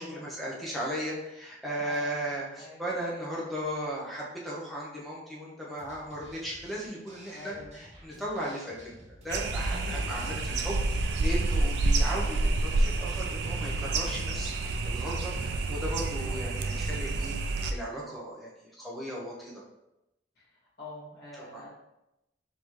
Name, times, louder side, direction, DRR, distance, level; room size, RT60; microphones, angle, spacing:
voice 1, 0.0-8.9 9.2-19.5 21.4-21.6, equal, ahead, -5 dB, 0.8 m, -36 dB
voice 2, 1.8-2.3 2.6-2.9 7.3-7.8 9.7-9.9 12.4-12.8 16.2-16.7 20.4-21.7, left 2 dB, 55° left, -6 dB, 1.4 m, -46 dB
sound 1, 5.8-12.6, right 1 dB, 40° right, 0.9 m, -52 dB
sound 2, 9.3-17.7, right 2 dB, 60° right, 0.3 m, -29 dB
3.9 x 3.5 x 3.1 m, 0.91 s
head